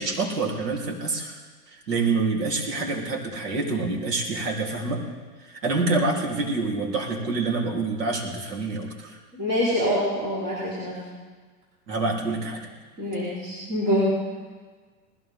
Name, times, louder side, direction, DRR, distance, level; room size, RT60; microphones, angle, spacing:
voice 1, 0.0-1.4 1.7-5.0 5.4-9.2 11.9-12.7, right 3 dB, 80° right, -1 dB, 3.7 m, -27 dB
voice 2, 9.3-11.0 13.0-14.1, equal, 25° right, -10 dB, 4.4 m, -25 dB
20.0 x 15.5 x 3.7 m, 1.4 s
hypercardioid pair, 165°, 48 cm